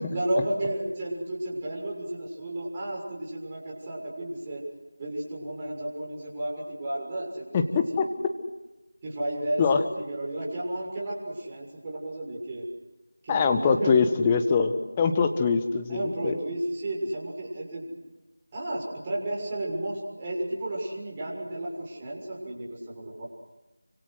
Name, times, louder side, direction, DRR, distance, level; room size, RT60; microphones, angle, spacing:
voice 1, 0.0-4.6 5.0-8.1 9.0-12.7 13.2-14.0 15.9-18.0 18.5-23.3, right 1 dB, 20° right, -3 dB, 6.8 m, -33 dB
voice 2, 7.5-8.0 9.6-9.8 13.3-16.4, left 5 dB, 15° left, 6 dB, 1.4 m, -23 dB
29.0 x 26.0 x 6.5 m, 1.1 s
figure-of-eight pair, 170°, 0 cm